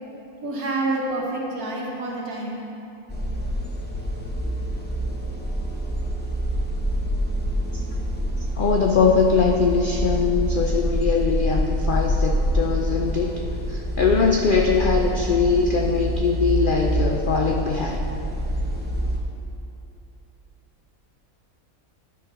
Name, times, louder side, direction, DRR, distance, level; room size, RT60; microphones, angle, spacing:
voice 1, 0.4-2.6, right 2 dB, 90° right, -3 dB, 1.8 m, -27 dB
sound 1, 3.1-19.2, right 1 dB, 10° left, 0.6 m, -26 dB
voice 2, 8.6-13.4 13.7-18.0, left 5 dB, 80° left, 1 dB, 0.4 m, -21 dB
10.5 x 5.9 x 3.8 m, 2.8 s
omnidirectional pair, 1.5 m